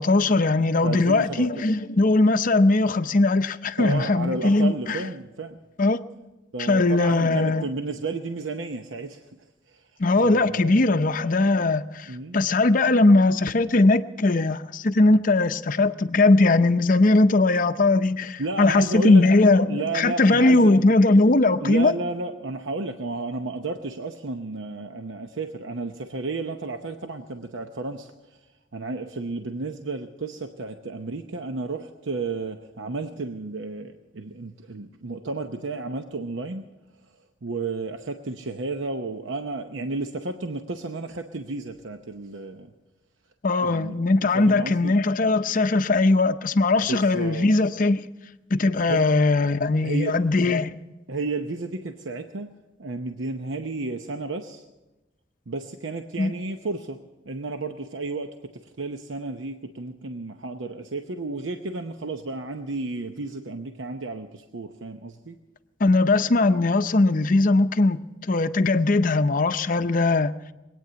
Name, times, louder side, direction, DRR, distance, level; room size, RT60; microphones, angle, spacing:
voice 1, 0.0-5.0 5.8-6.0 6.7-7.6 10.0-21.9 43.4-48.0 48.5-50.7 56.2-56.3 65.8-70.3, left 2 dB, 45° left, 0.6 m, -20 dB
voice 2, 0.8-1.7 3.8-5.6 6.5-9.3 9.7-9.8 10.2-11.0 12.1-12.4 18.4-19.2 19.7-20.7 21.6-28.4 28.7-36.6 37.4-42.7 43.6-44.1 44.3-44.9 46.8-47.5 48.9-49.1 49.8-50.6 51.1-52.5 52.8-54.6 55.5-57.0 57.3-65.4, right 3 dB, 80° right, 0.8 m, -32 dB
22.5 x 9.2 x 6.9 m
head